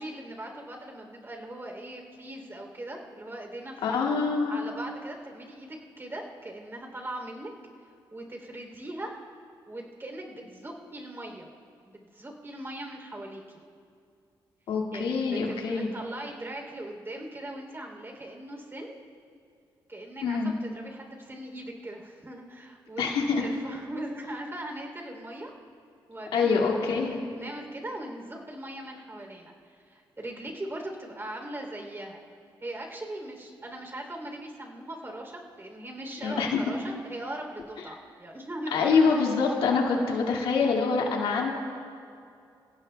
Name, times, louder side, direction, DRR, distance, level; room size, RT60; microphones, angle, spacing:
voice 1, 0.0-3.8 4.5-7.5 8.1-9.2 9.7-11.5 11.9-13.4 14.9-19.0 19.9-23.0 23.4-25.5 26.1-27.0 27.3-32.2 32.6-39.3, right 1 dB, 25° right, 1 dB, 3.2 m, -40 dB
voice 2, 3.8-4.6 14.7-15.9 20.2-20.6 23.0-23.4 26.3-27.2 36.2-36.6 38.7-41.5, left 5 dB, 85° left, -1 dB, 2.1 m, -25 dB
29.5 x 16.0 x 2.3 m, 2.4 s
cardioid pair, 70°, 9 cm